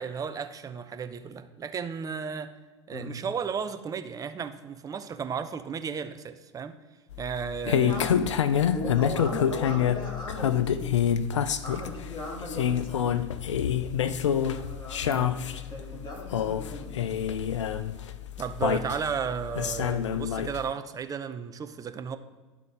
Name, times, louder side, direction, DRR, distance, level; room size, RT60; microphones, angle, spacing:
voice 1, 0.0-2.5 2.9-6.8 7.2-8.0 15.0-15.3 18.4-22.2, right 6 dB, 25° right, 10 dB, 0.6 m, -34 dB
sound 1, 7.1-20.7, left 9 dB, 80° left, 0.4 m, -27 dB
voice 2, 7.6-8.3 8.7-10.9 11.6-13.2 14.4-17.1, left 1 dB, 30° left, -1 dB, 2.5 m, -38 dB
11.5 x 3.9 x 4.5 m, 1.3 s
hypercardioid pair, 80°, 15 cm